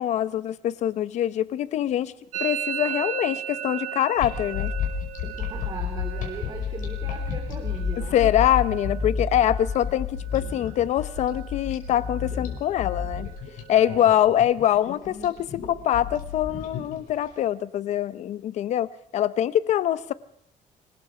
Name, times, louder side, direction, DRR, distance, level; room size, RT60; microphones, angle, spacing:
voice 1, 0.0-2.1 2.4-4.7 8.1-13.3 13.7-20.1, left 11 dB, 55° left, 17 dB, 0.8 m, -24 dB
Musical instrument, 2.3-10.0 10.2-10.8 11.1-11.7 11.9-13.9, right 12 dB, 70° right, 0.7 m, -37 dB
sound 1, 4.2-17.3, left 6 dB, 75° left, 5.1 m, -31 dB
voice 2, 5.4-8.3 13.7-14.1, right 4 dB, 30° right, 4 dB, 2.8 m, -39 dB
25.5 x 21.0 x 4.9 m, 0.76 s
cardioid pair, 180°, 14 cm